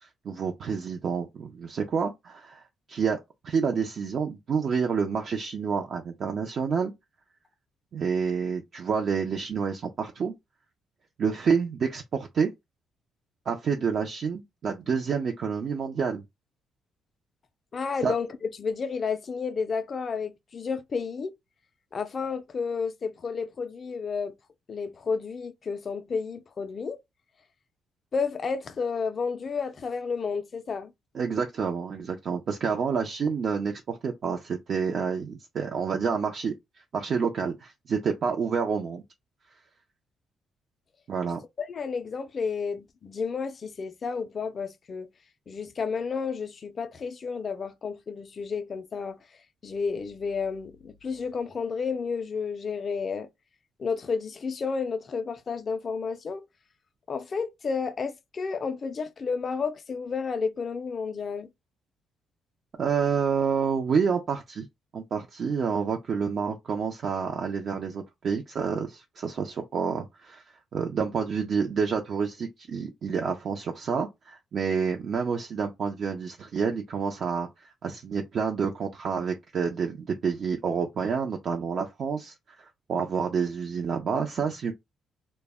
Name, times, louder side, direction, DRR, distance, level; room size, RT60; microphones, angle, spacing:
voice 1, 0.0-2.6 2.9-3.2 3.4-6.9 7.9-10.3 11.2-12.5 13.5-16.2 18.0-18.1 31.1-36.5 36.9-39.0 41.1-41.4 62.8-64.7 64.9-70.4 70.7-84.7, right 6 dB, 55° right, 0.4 m, -28 dB
voice 2, 17.7-21.3 21.9-24.3 24.7-27.0 28.1-30.9 41.6-45.1 45.5-49.2 49.6-53.3 53.8-56.4 57.1-61.5, left 5 dB, 45° left, 0.3 m, -31 dB
2.1 x 2.0 x 3.4 m
cardioid pair, 90°, 0 cm